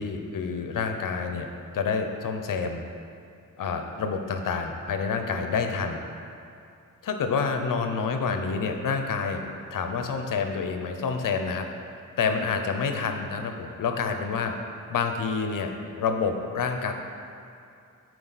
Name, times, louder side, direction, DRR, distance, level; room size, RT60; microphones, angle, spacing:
voice 1, 0.0-1.5 1.7-2.8 3.6-6.0 7.0-9.4 9.7-11.7 12.2-14.6 14.9-16.9, left 5 dB, 80° left, 5 dB, 0.6 m, -28 dB
7.6 x 4.7 x 4.0 m, 2.6 s
wide cardioid pair, 100°, 32 cm